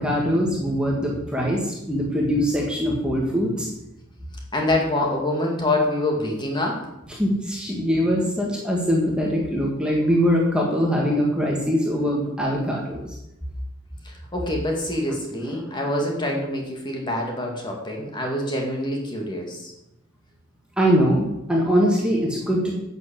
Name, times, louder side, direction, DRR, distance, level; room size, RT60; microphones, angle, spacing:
voice 1, 0.0-3.7 7.1-13.2 15.5-15.6 20.8-22.7, equal, 5° right, -3 dB, 1.8 m, -22 dB
voice 2, 4.5-6.9 14.0-19.7, left 1 dB, 20° left, 0 dB, 2.2 m, -25 dB
10.5 x 7.1 x 7.6 m, 0.89 s
head